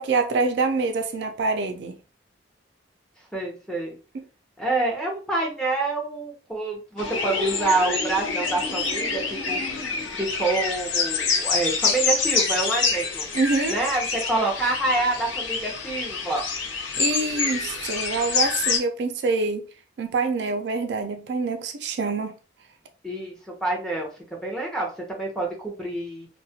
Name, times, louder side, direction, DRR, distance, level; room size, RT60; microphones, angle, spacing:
voice 1, 0.0-2.0 13.3-13.8 17.0-19.7 20.0-22.3, right 3 dB, 60° right, 0.3 m, -25 dB
voice 2, 3.3-4.0 4.6-13.3 13.7-16.4 23.0-26.3, right 2 dB, 5° left, 0.6 m, -27 dB
sound 1, 7.0-18.8, left 5 dB, 80° left, 0.6 m, -27 dB
2.3 x 2.1 x 2.7 m
head